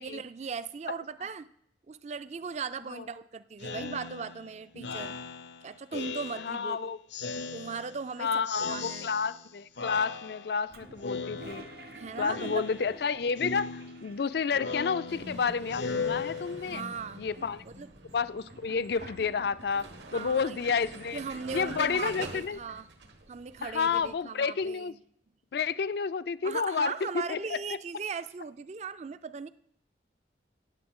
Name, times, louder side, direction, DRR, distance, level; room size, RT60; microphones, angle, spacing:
voice 1, 0.0-1.5 1.9-5.2 5.6-7.0 7.5-8.4 8.7-9.1 12.0-12.6 16.6-17.2 17.7-17.9 20.1-20.6 21.1-22.9 23.3-25.0 26.4-29.5, right 5 dB, 40° right, 15 dB, 0.4 m, -38 dB
Speech synthesizer, 3.6-6.7 7.1-8.1 8.5-9.5 9.8-10.7 11.0-11.9 12.3-13.1 13.4-16.9, left 4 dB, 80° left, 0.8 m, -38 dB
voice 2, 6.4-7.0 8.2-11.7 12.2-16.8 17.2-17.6 18.1-21.2 21.5-22.6 23.6-24.9 25.5-27.6, left 5 dB, 65° left, 15 dB, 0.4 m, -30 dB
Toilet flush, 10.7-15.1 15.3-15.4 15.6-16.5 17.0-19.8, right 1 dB, 55° right, 1.0 m, -50 dB
Vehicle, 15.1-24.1, right 2 dB, 75° right, 1.4 m, -46 dB
15.5 x 9.2 x 3.7 m, 0.71 s
head